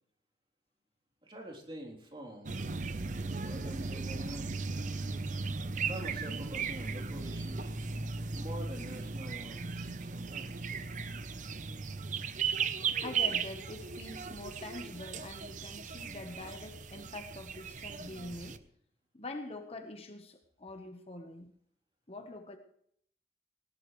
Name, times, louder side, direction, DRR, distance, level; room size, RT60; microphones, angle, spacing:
voice 1, 1.2-2.7 3.4-4.6 5.8-7.7 8.3-10.7, right 1 dB, 30° right, 0 dB, 3.4 m, -46 dB
sound 1, 2.5-18.6, right 5 dB, 45° right, 0.7 m, -37 dB
voice 2, 13.0-18.6 19.1-21.5 22.1-22.6, left 2 dB, 35° left, 6 dB, 1.2 m, -44 dB
19.0 x 18.5 x 3.2 m, 0.63 s
head